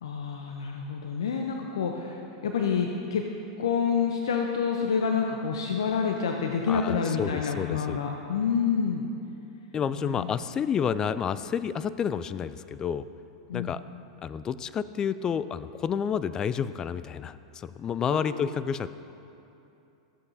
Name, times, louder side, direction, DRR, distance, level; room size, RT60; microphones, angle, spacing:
voice 1, 0.0-3.2 3.6-9.0 10.0-10.3 13.5-13.7 18.1-18.5, left 6 dB, 75° left, 2 dB, 0.6 m, -28 dB
voice 2, 6.7-8.0 9.7-13.1 13.5-13.8 14.2-18.9, left 7 dB, 25° left, 14 dB, 0.3 m, -30 dB
14.0 x 8.0 x 2.7 m, 2.7 s
hypercardioid pair, 100°, 3 cm